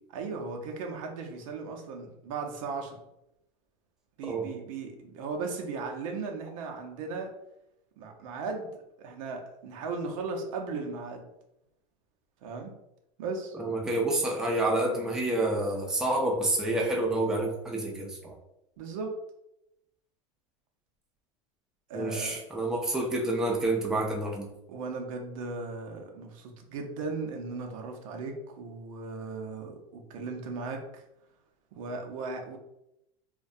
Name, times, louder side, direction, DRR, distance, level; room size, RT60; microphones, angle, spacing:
voice 1, 0.1-3.0 4.2-7.3 8.0-11.3 12.4-12.8 13.2-13.6 18.8-19.1 21.9-22.4 24.7-31.0 31.7-32.6, right 4 dB, 75° right, 2 dB, 0.6 m, -37 dB
voice 2, 13.6-18.3 21.9-24.5, right 2 dB, 5° right, -1 dB, 0.4 m, -28 dB
2.2 x 2.1 x 2.6 m, 0.85 s
supercardioid pair, 115°, 17 cm